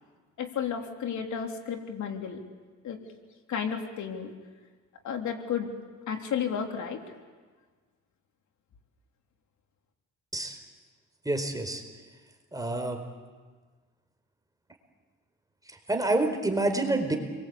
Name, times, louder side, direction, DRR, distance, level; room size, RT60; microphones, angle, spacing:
voice 1, 0.4-2.4 2.8-3.0 3.5-4.3 5.0-5.7 6.1-7.0, left 7 dB, 70° left, 3 dB, 3.4 m, -32 dB
voice 2, 11.2-11.8 12.5-13.0 15.7-17.2, right 2 dB, 10° right, 5 dB, 4.6 m, -28 dB
29.5 x 23.0 x 8.5 m, 1.4 s
cardioid pair, 90°, 30 cm